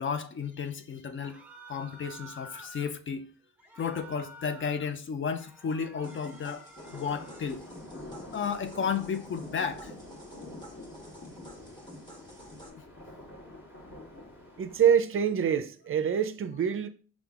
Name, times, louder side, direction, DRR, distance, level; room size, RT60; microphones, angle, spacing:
voice 1, 0.0-1.4 1.7-3.3 3.7-6.6 6.9-7.6 8.3-9.9, left 6 dB, 40° left, 0.5 m, -33 dB
sound 1, 1.2-2.9 3.6-4.9 5.3-7.6, right 1 dB, 5° right, 0.7 m, -50 dB
sound 2, 6.0-12.7, left 1 dB, 15° left, 1.2 m, -49 dB
sound 3, 6.7-14.8, left 1 dB, 65° left, 2.2 m, -47 dB
voice 2, 14.6-16.9, right 8 dB, 40° right, 0.5 m, -25 dB
5.1 x 3.5 x 2.4 m
cardioid pair, 80°, 33 cm